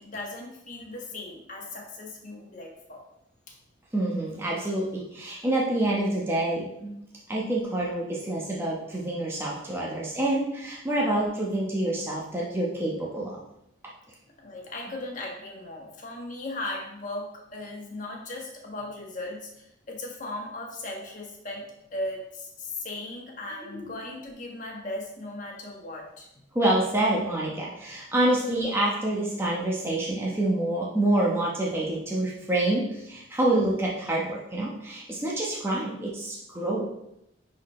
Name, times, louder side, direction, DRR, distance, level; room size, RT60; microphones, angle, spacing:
voice 1, 0.0-3.0 14.4-26.3, left 2 dB, 40° left, -1 dB, 1.4 m, -37 dB
voice 2, 3.9-6.9 7.3-13.4 23.6-24.0 26.5-36.9, right 1 dB, 10° right, -5 dB, 1.0 m, -27 dB
10.0 x 4.3 x 3.2 m, 0.81 s
head